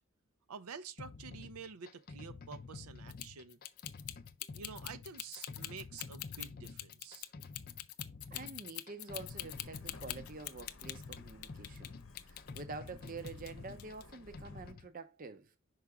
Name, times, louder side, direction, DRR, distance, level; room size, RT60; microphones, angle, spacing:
voice 1, 0.5-3.6 4.5-7.3, right 6 dB, 85° right, 0.6 m, -49 dB
sound 1, 1.0-14.9, left 4 dB, 40° left, 0.4 m, -50 dB
sound 2, 3.1-11.9 12.2-13.5 13.8-14.0, left 14 dB, 90° left, 0.5 m, -44 dB
voice 2, 8.3-11.9 12.2-15.5, right 3 dB, 40° right, 0.6 m, -47 dB
Truck, 9.1-14.7, left 2 dB, 60° left, 0.8 m, -56 dB
5.8 x 4.8 x 3.5 m
head